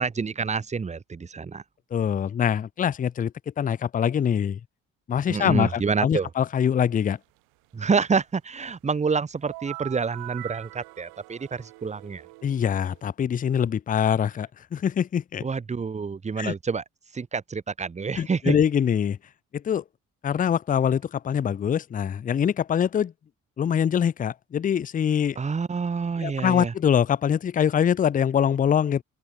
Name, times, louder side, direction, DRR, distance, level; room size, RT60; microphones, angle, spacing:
voice 1, 0.0-1.6 5.3-6.3 7.7-12.2 15.4-16.8 17.1-18.6 25.4-26.7, right 5 dB, 15° right, 0.7 m, -27 dB
voice 2, 1.9-4.6 5.1-7.2 12.4-15.5 16.4-16.5 18.2-19.2 19.5-19.8 20.2-23.1 23.6-25.4 26.2-29.0, left 8 dB, 20° left, 0.5 m, -24 dB
sound 1, 9.4-13.0, right 26 dB, 65° right, 0.9 m, -42 dB
open air
figure-of-eight pair, 40°, 40 cm